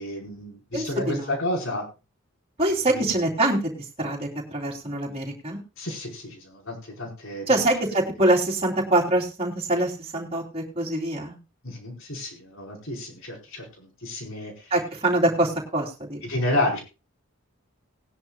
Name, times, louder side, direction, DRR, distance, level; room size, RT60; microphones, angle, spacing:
voice 1, 0.0-1.8 2.9-3.1 5.8-7.6 11.6-14.6 16.2-16.8, left 1 dB, 65° left, 0 dB, 4.8 m, -30 dB
voice 2, 0.7-1.4 2.6-3.7 4.0-5.6 7.5-11.4 14.7-16.2, right 1 dB, 25° right, -1 dB, 3.3 m, -24 dB
19.5 x 10.5 x 2.4 m, 0.30 s
head